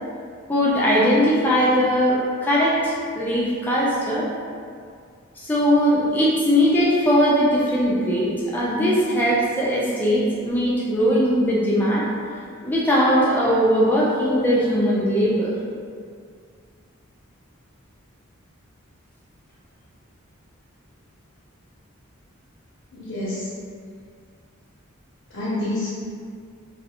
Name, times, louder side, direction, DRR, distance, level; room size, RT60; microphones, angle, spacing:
voice 1, 0.5-4.3 5.4-12.1 12.6-15.5, equal, 10° left, -7 dB, 0.4 m, -20 dB
voice 2, 22.9-23.5 25.3-25.9, left 1 dB, 60° left, -9 dB, 0.6 m, -28 dB
2.3 x 2.3 x 2.8 m, 2.2 s
head